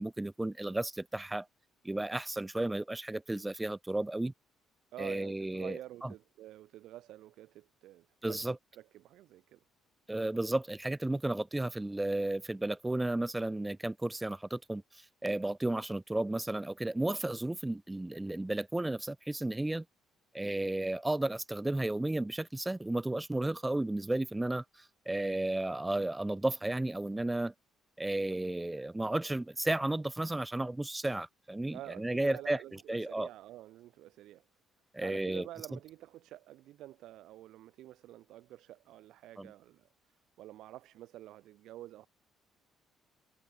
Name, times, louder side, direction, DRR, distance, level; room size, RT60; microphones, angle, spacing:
voice 1, 0.0-1.5 1.8-4.3 5.0-6.1 8.2-8.6 10.1-19.8 20.3-24.6 25.1-27.5 28.0-32.6 32.9-33.3 34.9-35.5 39.4-39.5, right 2 dB, 10° right, 0.6 m, -33 dB
voice 2, 4.9-8.4 8.7-9.6 31.7-34.4 35.0-39.9 40.4-42.1, right 14 dB, 75° right, 7.6 m, -49 dB
cardioid pair, 85°, 0 cm